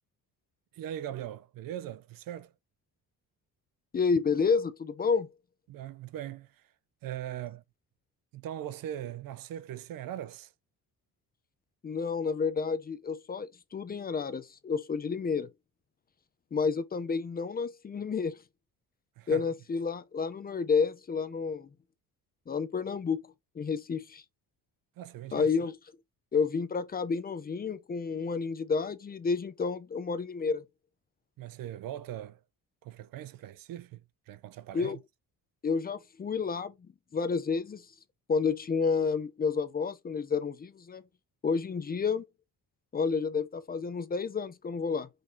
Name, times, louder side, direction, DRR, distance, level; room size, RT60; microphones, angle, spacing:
voice 1, 0.7-2.5 5.7-6.6 7.0-7.6 8.3-10.5 19.2-19.5 25.0-25.5 31.4-32.4 32.8-35.0, right 11 dB, 65° right, 0.5 m, -40 dB
voice 2, 3.9-5.3 11.8-15.5 16.5-18.4 19.3-21.7 22.5-24.2 25.3-25.7 26.3-30.6 34.7-35.0 35.6-36.7 37.1-37.8 38.3-41.0 41.4-42.3 42.9-45.1, left 5 dB, 25° left, 0.5 m, -30 dB
5.1 x 2.7 x 3.6 m
cardioid pair, 145°, 36 cm